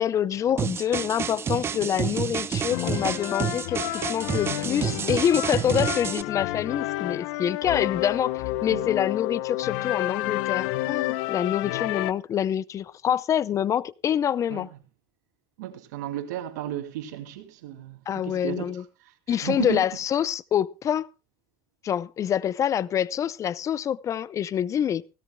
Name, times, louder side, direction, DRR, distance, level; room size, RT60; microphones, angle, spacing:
voice 1, 0.0-14.7 18.1-18.8 19.3-21.1 21.8-25.0, left 9 dB, 35° left, 0.6 m, -26 dB
sound 1, 0.6-6.2, right 7 dB, 25° right, 0.7 m, -29 dB
sound 2, 2.7-12.1, left 18 dB, 70° left, 0.7 m, -30 dB
voice 2, 15.6-19.8, right 14 dB, 85° right, 2.5 m, -34 dB
17.0 x 17.0 x 2.2 m
supercardioid pair, 115°, 9 cm